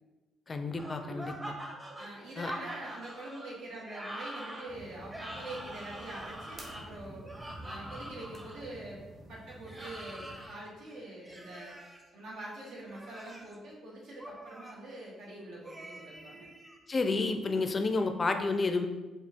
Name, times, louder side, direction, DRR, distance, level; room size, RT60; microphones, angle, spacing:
voice 1, 0.5-1.5 2.4-2.5 16.9-18.9, left 3 dB, 35° left, 7 dB, 0.4 m, -30 dB
sound 1, 0.8-8.6 9.6-10.5 11.2-12.0 12.8-13.5 14.2-14.7 15.6-16.8, right 1 dB, 15° right, 0.7 m, -45 dB
voice 2, 1.0-1.4 1.9-7.3 7.6-9.0 9.3-11.7 12.1-16.5, right 1 dB, 85° right, -4 dB, 1.2 m, -44 dB
sound 2, 4.7-10.5, right 1 dB, 45° right, 1.1 m, -49 dB
4.9 x 2.4 x 3.5 m, 1.2 s
cardioid pair, 90°, 0 cm